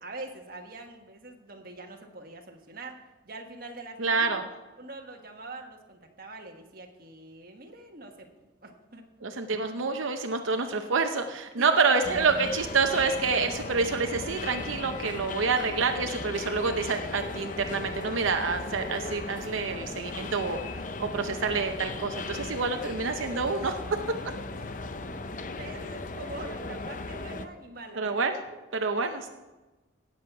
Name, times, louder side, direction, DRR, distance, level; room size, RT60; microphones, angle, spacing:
voice 1, 0.0-4.4 4.8-8.3 8.6-9.1 11.5-11.7 24.6-25.2 25.5-28.0, right 2 dB, 45° right, 3 dB, 1.4 m, -44 dB
voice 2, 4.0-4.4 9.2-20.6 21.0-24.0 28.0-28.3 28.7-29.3, right 4 dB, 85° right, 5 dB, 0.8 m, -27 dB
sound 1, 12.0-27.5, left 3 dB, 40° left, 0.6 m, -37 dB
17.0 x 7.7 x 4.7 m, 1.2 s
head